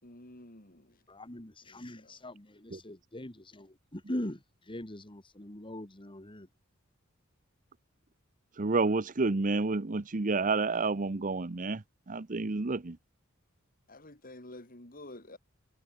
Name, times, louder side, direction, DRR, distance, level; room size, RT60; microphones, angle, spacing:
voice 1, 0.0-1.0 1.7-2.1 13.9-15.4, left 1 dB, 40° left, 4.8 m, -50 dB
voice 2, 1.1-6.5, left 1 dB, 25° left, 2.4 m, -41 dB
voice 3, 8.6-13.0, right 3 dB, 40° right, 0.8 m, -30 dB
head